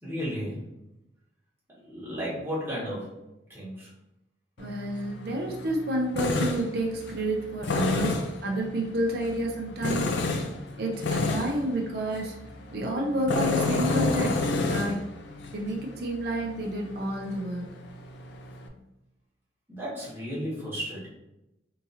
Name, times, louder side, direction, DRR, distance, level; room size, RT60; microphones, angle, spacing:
voice 1, 0.0-0.6 1.7-3.2 3.5-3.9 19.7-21.1, equal, 15° right, -8 dB, 1.3 m, -34 dB
Tools, 4.6-18.7, left 3 dB, 75° left, 0.4 m, -31 dB
voice 2, 4.6-10.1 10.8-12.3 12.7-15.0 15.5-17.7, right 1 dB, 60° right, -1 dB, 0.5 m, -30 dB
3.7 x 2.8 x 2.7 m, 0.92 s
head